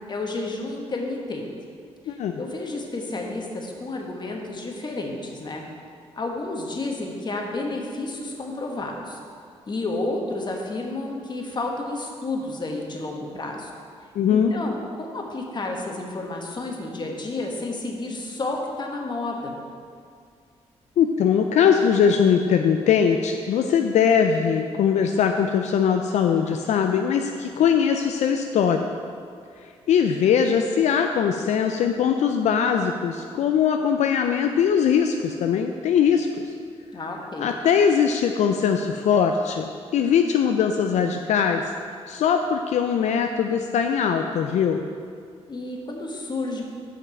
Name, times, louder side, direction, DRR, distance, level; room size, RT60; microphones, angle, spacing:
voice 1, 0.1-1.5 2.0-5.7 6.1-9.2 9.7-13.7 14.3-19.5 36.9-37.5 45.5-46.6, left 2 dB, 40° left, 1 dB, 1.3 m, -31 dB
voice 2, 2.1-2.4 14.2-14.5 21.0-28.9 29.9-36.3 37.4-39.6 39.9-41.6 42.1-44.8, left 7 dB, 75° left, 5 dB, 0.4 m, -21 dB
6.0 x 5.8 x 7.0 m, 2.3 s
cardioid pair, 80°, 12 cm